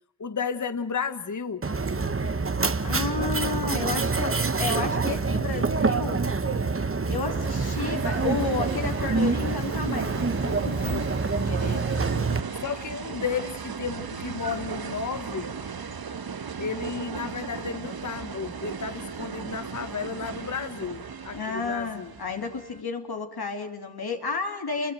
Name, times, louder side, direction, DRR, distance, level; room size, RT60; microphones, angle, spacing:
voice 1, 0.2-1.7 12.5-15.5 16.6-22.1, left 6 dB, 45° left, 1.3 m, -33 dB
Mechanisms, 1.6-12.4, right 4 dB, 35° right, 1.3 m, -26 dB
voice 2, 2.8-6.3 7.1-12.0 21.3-24.9, left 4 dB, 70° left, 3.1 m, -32 dB
sound 1, 7.4-22.8, right 6 dB, 60° right, 1.5 m, -37 dB
29.0 x 24.0 x 7.7 m
cardioid pair, 55°, 40 cm